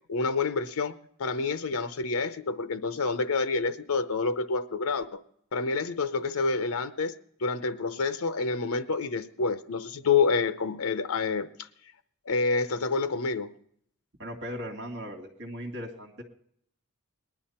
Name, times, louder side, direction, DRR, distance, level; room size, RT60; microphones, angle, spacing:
voice 1, 0.1-5.2 5.5-7.1 7.4-11.7 12.3-13.5, left 4 dB, 75° left, 11 dB, 0.7 m, -28 dB
voice 2, 14.2-16.2, equal, 60° right, 2 dB, 2.3 m, -38 dB
19.0 x 11.0 x 4.3 m, 0.69 s
head